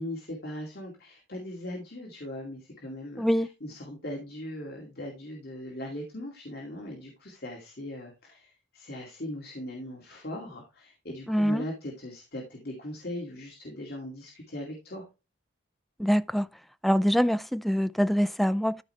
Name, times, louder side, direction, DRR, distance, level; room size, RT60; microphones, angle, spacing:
voice 1, 0.0-15.0, left 1 dB, 55° left, 2.4 m, -39 dB
voice 2, 11.3-11.6 16.0-16.5 16.8-18.8, equal, ahead, 0.4 m, -24 dB
13.5 x 5.0 x 3.3 m
head